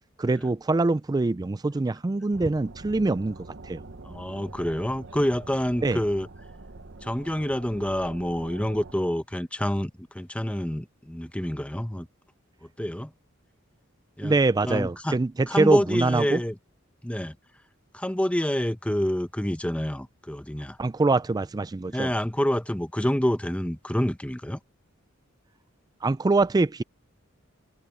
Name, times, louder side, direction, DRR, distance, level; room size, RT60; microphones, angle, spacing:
voice 1, 0.2-3.4 3.7-3.8 5.8-6.0 14.2-16.4 20.8-22.1 26.0-26.8, right 3 dB, 20° right, 0.3 m, -24 dB
sound 1, 2.3-8.9, right 2 dB, 60° right, 1.1 m, -45 dB
voice 2, 4.0-6.3 7.0-12.1 12.8-13.1 14.2-14.3 14.6-15.1 15.5-16.5 17.0-17.3 17.9-20.8 21.9-24.6, equal, 5° left, 0.9 m, -27 dB
head